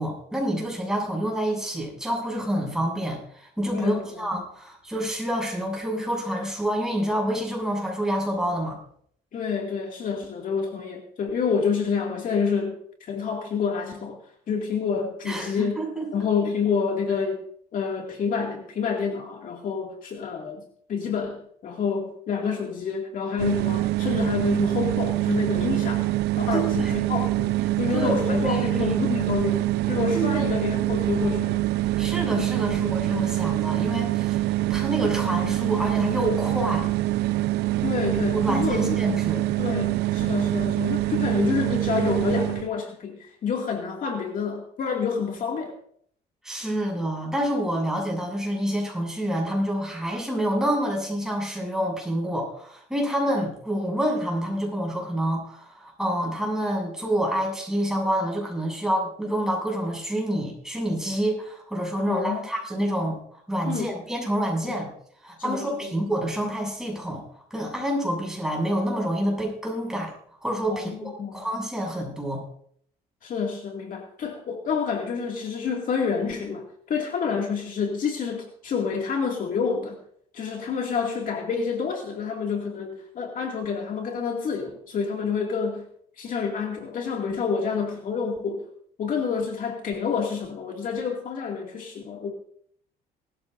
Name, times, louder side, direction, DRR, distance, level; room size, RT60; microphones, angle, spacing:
voice 1, 0.0-8.8 15.2-16.1 26.5-27.0 27.9-28.9 30.1-30.6 32.0-36.9 38.3-39.4 46.4-63.2 63.5-64.9 65.2-67.2 67.5-70.1 70.4-72.4, equal, 5° right, -1 dB, 6.9 m, -27 dB
voice 2, 3.7-4.1 9.3-12.8 13.1-14.2 14.5-15.8 16.1-17.4 17.7-20.6 20.9-26.1 26.4-27.5 27.8-31.6 37.8-39.0 39.6-45.7 62.1-62.4 63.7-63.9 65.4-65.9 70.7-71.4 73.2-80.0 80.3-85.9 86.2-88.6 89.0-92.3, left 6 dB, 50° left, 1 dB, 2.3 m, -28 dB
sound 1, 23.4-42.7, right 17 dB, 85° right, 0.6 m, -25 dB
19.5 x 14.0 x 2.6 m, 0.63 s
cardioid pair, 110°, 17 cm